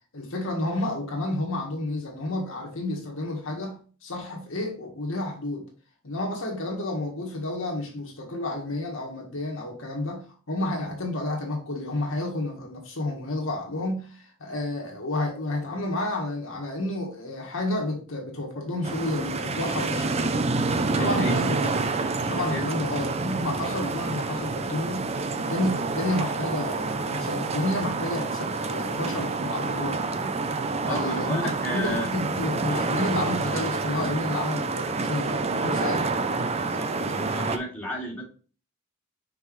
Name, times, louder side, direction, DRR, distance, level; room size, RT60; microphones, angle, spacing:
voice 1, 0.1-5.7 6.0-20.4 21.0-21.7 22.3-30.0 30.8-36.1, left 1 dB, 65° left, 1.6 m, -30 dB
sound 1, 18.8-37.6, right 3 dB, 30° right, 0.6 m, -28 dB
voice 2, 20.9-21.4 22.4-22.6 30.8-32.1 32.7-32.9 36.6-38.2, equal, 10° left, 2.3 m, -33 dB
6.2 x 4.7 x 3.2 m
head